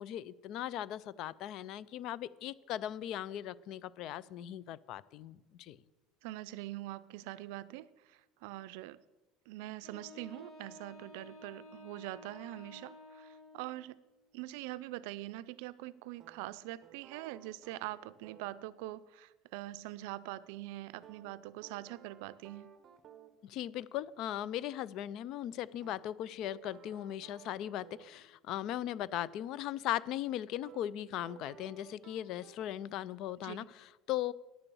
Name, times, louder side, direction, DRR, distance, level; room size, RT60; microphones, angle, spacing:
voice 1, 0.0-5.8 23.4-34.3, left 12 dB, 50° left, 20 dB, 0.3 m, -38 dB
voice 2, 6.2-9.0 9.5-14.0 14.3-22.7 33.4-33.7, right 16 dB, 80° right, 16 dB, 0.4 m, -44 dB
Wind instrument woodwind instrument, 9.8-13.9, left 1 dB, 25° left, 4.2 m, -53 dB
sound 1, 16.2-18.6 21.0-23.4 25.8-28.2 30.6-30.9 31.2-32.6, right 8 dB, 35° right, 0.9 m, -57 dB
10.0 x 6.9 x 6.9 m, 1.1 s
cardioid pair, 160°, 0 cm